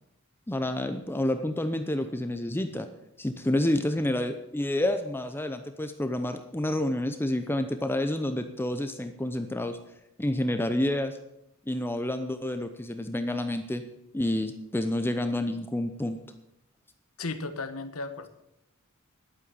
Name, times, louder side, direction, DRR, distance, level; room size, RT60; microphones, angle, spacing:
voice 1, 0.5-2.9 3.2-9.8 10.2-11.2 11.7-13.8 14.1-16.2, left 1 dB, 10° left, 8 dB, 0.6 m, -29 dB
voice 2, 17.2-18.3, left 3 dB, 90° left, 9 dB, 1.2 m, -35 dB
11.5 x 8.9 x 7.0 m, 0.83 s
head